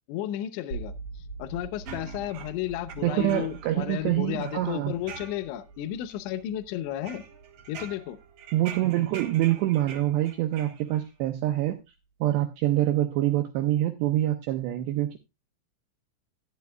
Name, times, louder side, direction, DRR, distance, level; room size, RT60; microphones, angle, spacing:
voice 1, 0.1-0.9 1.4-7.2 7.7-8.2, left 12 dB, 80° left, 13 dB, 2.8 m, -33 dB
sound 1, 0.7-10.7, right 3 dB, 30° left, 2.6 m, -45 dB
sound 2, 1.9-3.8 4.1-5.8 6.1-6.6 7.0-11.1, right 7 dB, 65° right, 1.9 m, -45 dB
voice 2, 3.0-4.9 8.5-11.8 12.2-15.2, right 14 dB, 90° right, 5 dB, 2.5 m, -25 dB
13.5 x 10.5 x 2.3 m, 0.23 s
omnidirectional pair, 6.0 m